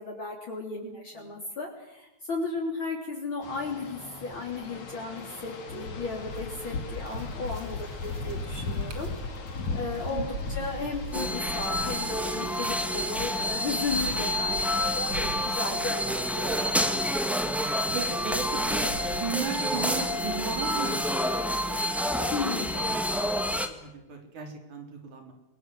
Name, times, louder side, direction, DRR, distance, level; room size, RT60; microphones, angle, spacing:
voice 1, 0.0-7.8 8.0-9.1 9.7-16.7 22.3-22.7, left 3 dB, 45° left, -2 dB, 4.2 m, -35 dB
voice 2, 0.8-1.4 10.1-10.8 15.7-16.2 17.9-25.3, right 5 dB, 90° right, 4 dB, 5.3 m, -38 dB
sound 1, 3.4-13.3, left 3 dB, 70° left, 4.2 m, -37 dB
sound 2, 6.1-20.6, right 2 dB, 40° right, 2.6 m, -44 dB
sound 3, 11.1-23.7, left 1 dB, ahead, 1.2 m, -28 dB
29.5 x 21.5 x 7.9 m, 0.94 s
omnidirectional pair, 3.3 m